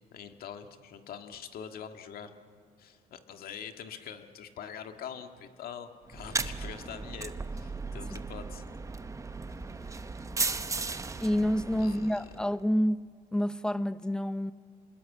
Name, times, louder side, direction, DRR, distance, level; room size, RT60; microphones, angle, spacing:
voice 1, 0.1-2.3 2.8-8.7 9.8-10.0 10.8-10.9 11.8-12.3, left 8 dB, 60° left, 1.8 m, -44 dB
sound 1, 6.1-12.5, right 3 dB, 20° right, 0.9 m, -36 dB
voice 2, 11.2-14.5, equal, 5° left, 0.6 m, -28 dB
27.5 x 20.5 x 8.4 m
cardioid pair, 110°, 17 cm